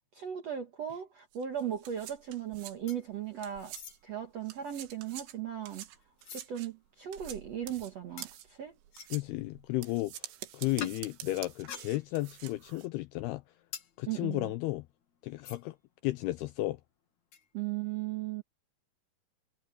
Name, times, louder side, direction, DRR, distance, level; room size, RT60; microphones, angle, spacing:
voice 1, 0.1-3.7 4.0-5.9 6.3-8.8 14.1-14.5 17.5-18.4, right 10 dB, 65° right, 1.7 m, -37 dB
sound 1, 1.3-4.1 4.4-12.9, right 13 dB, 85° right, 3.7 m, -47 dB
sound 2, 2.9-3.3 3.6-4.0 4.7-6.5 7.1-7.2 8.2-8.3 8.9-9.3 10.8-11.0 11.5-12.4 12.7-15.8 16.1-16.2 16.4-16.7 17.3-17.5, left 7 dB, 50° left, 2.9 m, -48 dB
voice 2, 9.1-13.4 14.0-14.8 15.2-15.8 16.0-16.8, left 18 dB, 80° left, 2.3 m, -33 dB
omnidirectional pair, 5.1 m